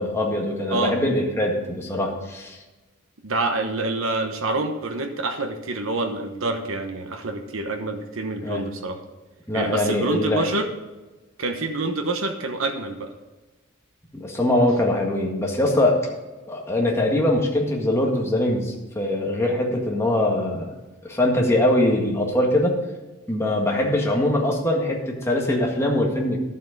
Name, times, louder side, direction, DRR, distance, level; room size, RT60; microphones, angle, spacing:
voice 1, 0.0-2.6 8.4-8.6 9.5-10.5 14.1-16.0 16.5-20.7 21.0-22.8 23.3-26.4, left 1 dB, 15° left, -1 dB, 1.8 m, -22 dB
voice 2, 3.2-9.0 9.5-10.7 11.4-13.1, right 2 dB, 75° right, 5 dB, 1.1 m, -27 dB
11.5 x 7.4 x 5.3 m, 1.2 s
head